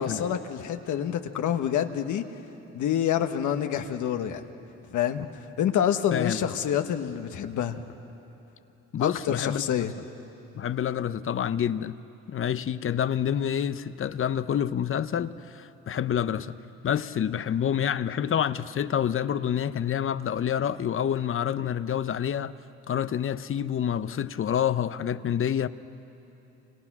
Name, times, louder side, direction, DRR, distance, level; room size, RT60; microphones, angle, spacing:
voice 1, 0.0-2.2 2.7-4.4 4.9-5.3 5.6-7.8 9.0-9.9 12.8-13.0, left 9 dB, 80° left, 1.3 m, -27 dB
voice 2, 8.9-9.9 10.5-11.9 12.3-16.5 16.8-22.5 22.9-25.7, left 9 dB, 45° left, 0.7 m, -28 dB
28.5 x 26.5 x 6.1 m
cardioid pair, 90°, 30 cm